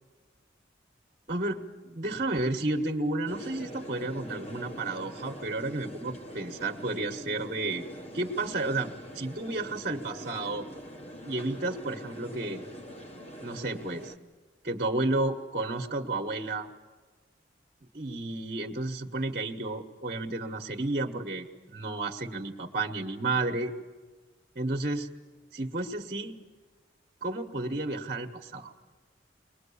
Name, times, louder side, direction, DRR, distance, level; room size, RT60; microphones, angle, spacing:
voice 1, 1.3-7.8 8.1-10.6 11.2-12.6 13.4-14.1 14.6-16.7 17.9-23.7 24.5-25.1 25.5-26.4 27.2-28.7, right 2 dB, 45° right, 1 dB, 1.4 m, -32 dB
sound 1, 3.3-14.2, equal, 35° left, 1.3 m, -44 dB
22.5 x 20.5 x 8.6 m, 1.3 s
head